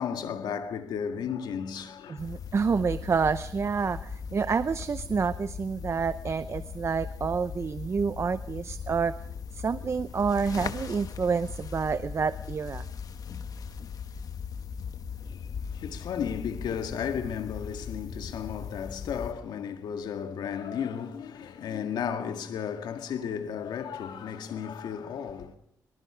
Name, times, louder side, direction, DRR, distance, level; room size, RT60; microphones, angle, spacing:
voice 1, 0.0-2.3 15.2-25.6, left 7 dB, 85° left, 2.0 m, -34 dB
voice 2, 2.1-9.1 9.5-12.9, right 5 dB, 40° right, 0.7 m, -28 dB
sound 1, 2.2-19.3, left 6 dB, 60° left, 1.3 m, -39 dB
23.5 x 23.0 x 5.1 m
cardioid pair, 95°, 7 cm